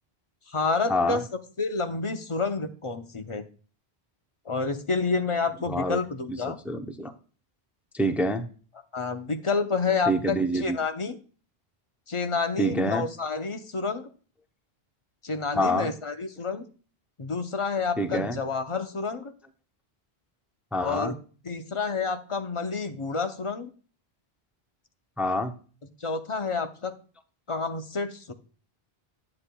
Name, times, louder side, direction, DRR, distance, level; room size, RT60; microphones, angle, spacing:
voice 1, 0.5-1.2 1.6-3.4 4.5-6.6 8.9-11.2 12.1-14.1 15.2-16.6 17.2-19.3 20.8-21.1 21.4-23.7 26.0-26.9 27.5-28.3, left 4 dB, 35° left, 8 dB, 0.6 m, -29 dB
voice 2, 5.7-6.0 6.3-6.4 6.7-7.1 7.9-8.5 10.1-10.8 12.6-13.1 15.5-15.9 18.0-18.4 20.7-21.2 25.2-25.5, equal, ahead, 7 dB, 0.4 m, -26 dB
9.7 x 8.5 x 2.2 m, 0.39 s
omnidirectional pair, 1.0 m